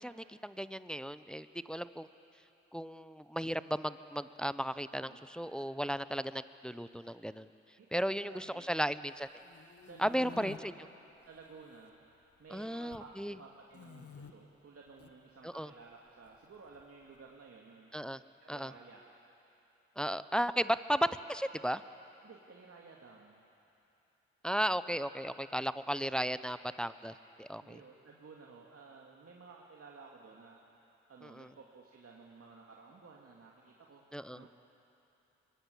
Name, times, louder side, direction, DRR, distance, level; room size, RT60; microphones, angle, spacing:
voice 1, 0.0-2.1 2.7-7.5 7.9-9.3 10.0-10.7 12.5-13.4 15.4-15.7 17.9-18.2 18.5-18.7 20.0-21.8 24.4-27.8 31.4-31.5 34.1-34.5, equal, 5° left, 14 dB, 0.8 m, -35 dB
voice 2, 7.8-8.7 9.8-10.6 11.2-17.9 18.4-19.0 22.2-23.4 27.6-34.5, right 4 dB, 50° right, -2 dB, 2.4 m, -55 dB
sound 1, 9.2-10.6 11.2-11.9 12.1-13.1 13.7-14.3 14.9-15.1 16.2-17.2, left 6 dB, 50° left, 1.6 m, -52 dB
23.5 x 19.0 x 8.5 m, 2.9 s
supercardioid pair, 45°, 30 cm